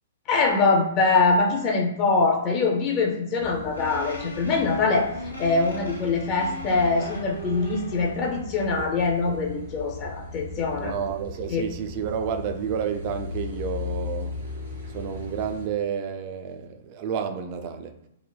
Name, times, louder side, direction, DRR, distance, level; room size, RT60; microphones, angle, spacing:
voice 1, 0.3-5.1 5.4-10.9 11.5-11.7, left 3 dB, 30° left, 1 dB, 0.4 m, -23 dB
Car passing by / Idling / Accelerating revving vroom, 3.4-15.7, left 3 dB, 65° right, 0.9 m, -38 dB
sound 1, 3.7-8.3, left 1 dB, 90° left, 0.7 m, -38 dB
voice 2, 10.8-14.3 14.9-17.9, right 7 dB, 40° right, 7 dB, 0.3 m, -30 dB
3.2 x 2.0 x 2.2 m, 0.83 s
figure-of-eight pair, 115°, 0 cm